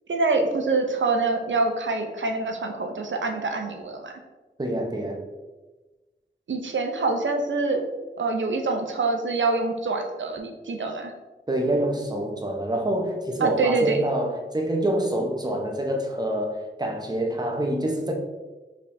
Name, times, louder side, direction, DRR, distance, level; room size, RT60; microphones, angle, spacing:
voice 1, 0.1-4.1 6.5-7.8 8.1-11.1 13.4-14.0, right 3 dB, 80° right, 4 dB, 0.6 m, -25 dB
voice 2, 4.6-5.2 11.5-18.1, right 1 dB, 20° right, 2 dB, 0.8 m, -26 dB
5.1 x 3.4 x 2.6 m, 1.2 s
wide cardioid pair, 50°, 19 cm